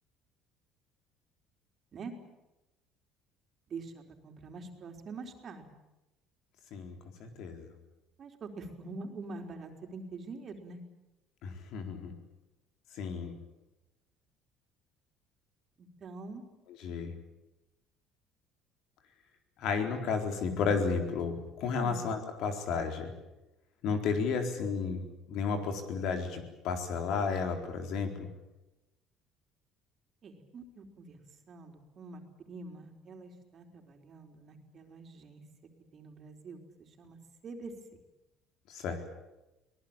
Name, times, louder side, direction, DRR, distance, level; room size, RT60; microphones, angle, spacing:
voice 1, 3.7-5.6 8.2-10.8 15.8-16.5 21.8-22.0 30.2-31.2 31.5-32.2 32.5-35.4 35.9-37.7, right 3 dB, 45° right, 4 dB, 4.0 m, -45 dB
voice 2, 6.7-7.7 11.4-12.1 12.9-13.3 16.8-17.1 19.6-23.1 23.8-28.3 38.7-39.0, left 5 dB, 70° left, 5 dB, 4.2 m, -33 dB
24.0 x 19.0 x 8.9 m, 0.98 s
cardioid pair, 110°, 0 cm